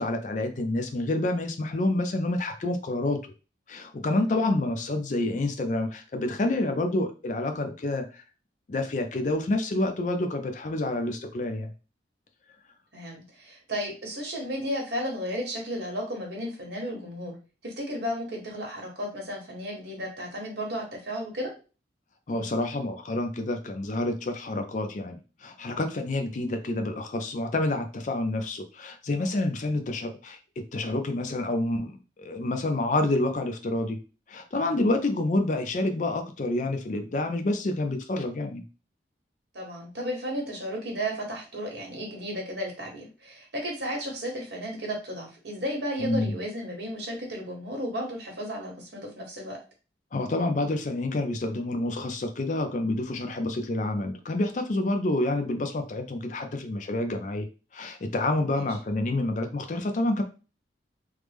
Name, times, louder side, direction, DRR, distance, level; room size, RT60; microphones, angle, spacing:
voice 1, 0.0-3.2 3.7-8.2 8.7-11.7 22.3-34.0 34.3-38.6 46.0-46.4 50.1-57.5 57.7-60.2, left 2 dB, 45° left, 6 dB, 0.4 m, -28 dB
voice 2, 4.2-4.5 12.9-17.3 17.6-21.5 39.5-49.6 58.5-58.6, equal, 70° right, 0 dB, 1.2 m, -34 dB
3.2 x 2.0 x 3.4 m, 0.33 s
head